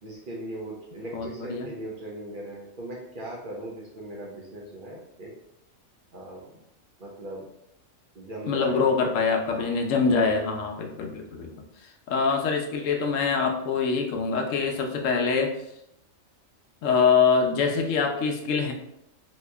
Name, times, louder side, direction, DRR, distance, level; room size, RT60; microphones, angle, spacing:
voice 1, 0.0-5.3 6.1-6.5 7.0-7.5 8.1-9.1 9.5-9.8, right 1 dB, 50° right, -3 dB, 0.7 m, -38 dB
voice 2, 1.1-1.7 8.5-11.5 12.1-15.5 16.8-18.7, left 5 dB, 75° left, 3 dB, 0.9 m, -24 dB
2.9 x 2.7 x 3.3 m, 0.81 s
omnidirectional pair, 1.4 m